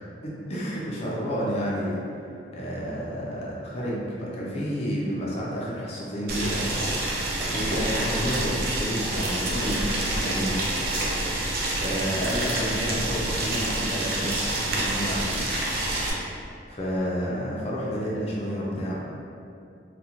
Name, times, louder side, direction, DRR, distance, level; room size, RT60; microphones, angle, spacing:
voice 1, 0.2-2.0 2.5-6.8 7.4-10.7 11.1-11.4 11.8-15.4 16.0-16.2 16.7-19.0, equal, 35° left, -5 dB, 0.4 m, -30 dB
Boiling, 6.3-16.1, right 1 dB, 55° right, 0.4 m, -28 dB
2.4 x 2.1 x 2.8 m, 2.5 s
head